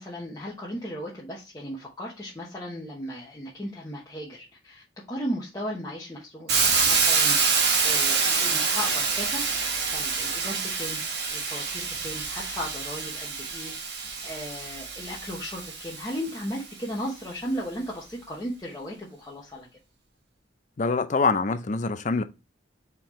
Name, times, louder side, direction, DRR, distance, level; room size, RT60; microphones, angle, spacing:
voice 1, 0.0-9.4 9.9-11.0 11.3-19.7, equal, 20° left, 0.9 m, -36 dB
Hiss, 6.5-16.4, right 5 dB, 60° right, 1.1 m, -26 dB
voice 2, 20.8-22.2, left 4 dB, 40° left, 0.4 m, -24 dB
4.4 x 3.7 x 3.0 m
head